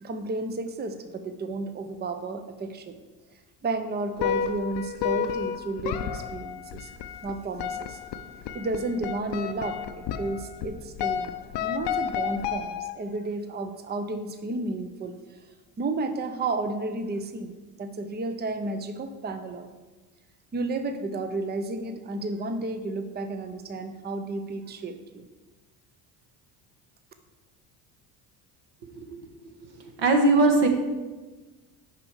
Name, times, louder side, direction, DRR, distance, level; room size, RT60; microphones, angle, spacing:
voice 1, 0.0-3.0 3.6-6.9 7.2-8.0 8.5-11.3 11.6-15.1 15.8-17.5 17.8-19.7 20.5-25.2, right 2 dB, 20° right, 8 dB, 0.7 m, -32 dB
sound 1, 4.2-13.2, left 8 dB, 55° left, 0.6 m, -32 dB
voice 2, 30.0-30.7, right 2 dB, 55° right, 4 dB, 1.4 m, -20 dB
6.7 x 5.3 x 4.8 m, 1.3 s
hypercardioid pair, 65°, 50 cm